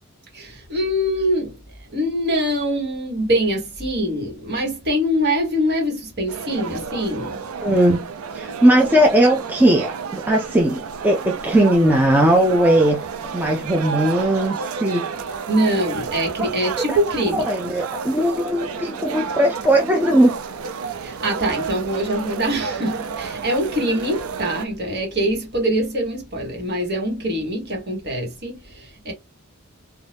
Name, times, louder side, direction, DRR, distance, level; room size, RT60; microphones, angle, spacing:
voice 1, 0.3-1.6 1.9-7.4 8.8-8.9 15.5-17.5 21.0-29.1, equal, 50° right, 1.3 m, -23 dB
sound 1, 6.3-24.7, right 5 dB, 75° right, 0.5 m, -31 dB
voice 2, 7.6-8.0 8.3-13.0 13.3-15.0 16.4-16.5 16.9-17.0 17.3-20.3, right 1 dB, 10° right, 0.4 m, -18 dB
2.6 x 2.3 x 3.3 m
head